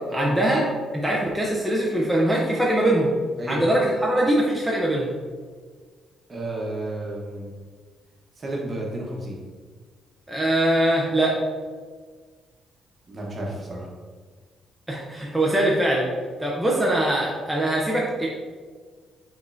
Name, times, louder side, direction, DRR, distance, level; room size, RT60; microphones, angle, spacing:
voice 1, 0.1-0.6 0.9-3.1 3.5-5.1 10.3-11.3 14.9-16.1 16.4-18.3, right 1 dB, 5° right, -4 dB, 0.7 m, -22 dB
voice 2, 6.3-7.5 8.4-9.4 13.1-13.9, right 1 dB, 35° right, -2 dB, 1.1 m, -32 dB
5.3 x 3.7 x 2.6 m, 1.5 s
cardioid pair, 105°, 0 cm